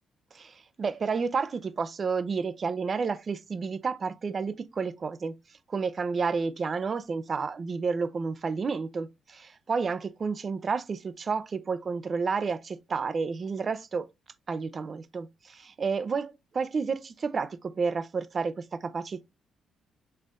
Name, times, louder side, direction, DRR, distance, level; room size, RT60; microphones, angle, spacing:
voice 1, 0.3-5.3 5.7-14.1 14.5-19.2, right 5 dB, 40° right, 0.5 m, -31 dB
5.5 x 3.3 x 2.5 m
cardioid pair, 90°, 0 cm